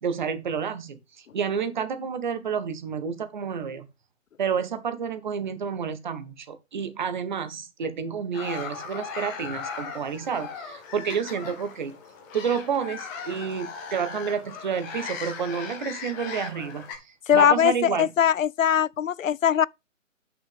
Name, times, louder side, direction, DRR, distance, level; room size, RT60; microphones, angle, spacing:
voice 1, 0.0-3.9 4.4-12.0 12.3-18.1, right 6 dB, 35° right, 1.4 m, -30 dB
sound 1, 8.3-16.9, left 6 dB, 15° left, 1.2 m, -38 dB
voice 2, 17.3-19.7, left 9 dB, 80° left, 0.5 m, -21 dB
8.7 x 6.2 x 3.5 m
figure-of-eight pair, 145°, 39 cm